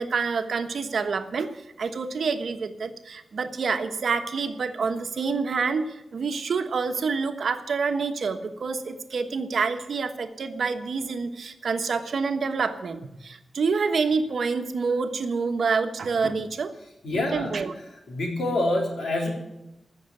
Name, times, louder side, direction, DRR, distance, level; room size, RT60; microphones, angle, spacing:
voice 1, 0.0-1.5 1.8-16.7 17.1-17.7, right 5 dB, 65° right, 7 dB, 1.2 m, -27 dB
voice 2, 17.0-17.5 18.1-19.3, left 2 dB, 85° left, 0 dB, 3.9 m, -26 dB
15.5 x 6.6 x 9.3 m, 0.91 s
wide cardioid pair, 135°, 0 cm